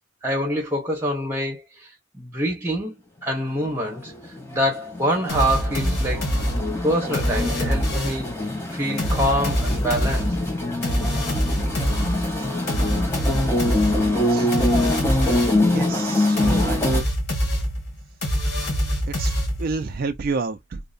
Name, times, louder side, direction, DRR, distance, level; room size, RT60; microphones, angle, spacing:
voice 1, 0.2-4.1 4.5-6.3 6.8-8.4 8.7-10.4, equal, 10° right, 1.0 m, -25 dB
sound 1, 3.6-17.0, left 1 dB, 10° left, 0.7 m, -25 dB
sound 2, 5.3-8.3 9.0-15.7 16.4-19.9, equal, 50° left, 1.3 m, -25 dB
voice 2, 15.6-16.8 19.1-19.3 19.6-20.8, right 4 dB, 45° right, 0.3 m, -29 dB
2.7 x 2.0 x 2.4 m
head